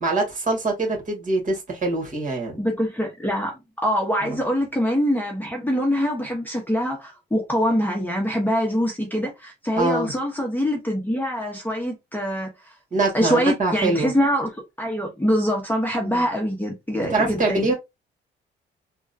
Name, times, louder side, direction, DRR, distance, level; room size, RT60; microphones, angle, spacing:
voice 1, 0.0-2.5 4.2-4.4 9.7-10.1 12.9-14.1 16.0-16.2 17.1-17.7, right 2 dB, 40° right, 1.8 m, -24 dB
voice 2, 2.6-12.7 13.1-14.5 14.8-17.7, equal, 10° left, 1.0 m, -24 dB
3.5 x 2.3 x 2.7 m
cardioid pair, 90°, 20 cm